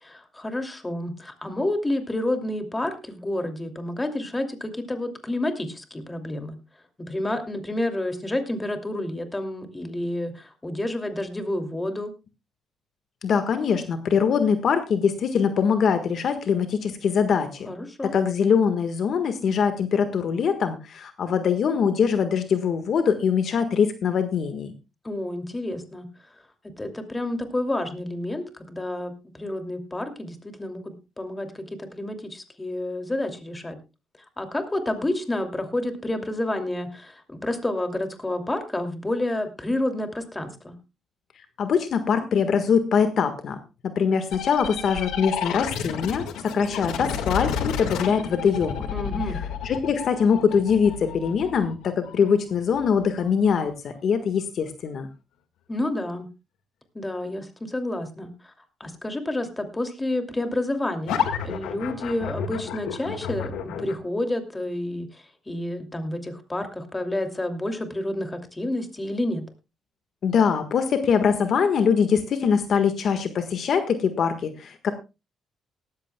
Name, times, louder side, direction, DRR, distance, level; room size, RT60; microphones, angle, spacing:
voice 1, 0.0-6.6 7.0-12.1 17.6-18.1 25.0-26.1 26.8-33.8 34.4-40.7 48.9-49.4 55.7-56.3 56.9-58.5 58.8-69.5, left 1 dB, 15° left, 6 dB, 2.7 m, -29 dB
voice 2, 13.2-17.7 18.0-24.7 41.6-43.6 43.9-48.9 49.6-55.1 70.2-74.9, left 6 dB, 60° left, 9 dB, 1.6 m, -23 dB
sound 1, 44.3-53.7 61.1-63.9, left 8 dB, 90° left, 1.8 m, -31 dB
18.0 x 14.0 x 2.3 m, 0.27 s
cardioid pair, 90°, 0 cm